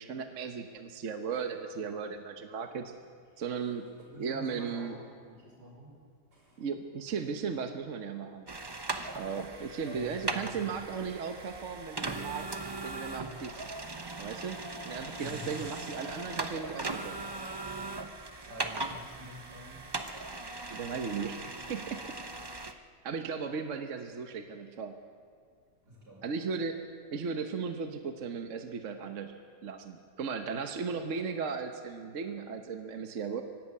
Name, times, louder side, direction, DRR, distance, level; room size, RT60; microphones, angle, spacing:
voice 1, 0.0-2.9 3.4-3.9 4.2-4.9 6.6-8.5 9.1-12.4 12.8-13.7 14.2-14.6 14.8-17.2 20.7-22.0 23.0-25.0 26.2-26.8 27.1-33.4, right 5 dB, 55° right, 6 dB, 1.3 m, -36 dB
voice 2, 4.0-5.9 6.3-6.7 9.8-10.7 15.2-15.6 17.9-19.8 25.9-26.3, equal, 80° right, -3 dB, 6.3 m, -47 dB
sound 1, 8.5-22.7, right 2 dB, 20° right, 0.7 m, -39 dB
24.0 x 12.5 x 8.7 m, 2.1 s
omnidirectional pair, 1.7 m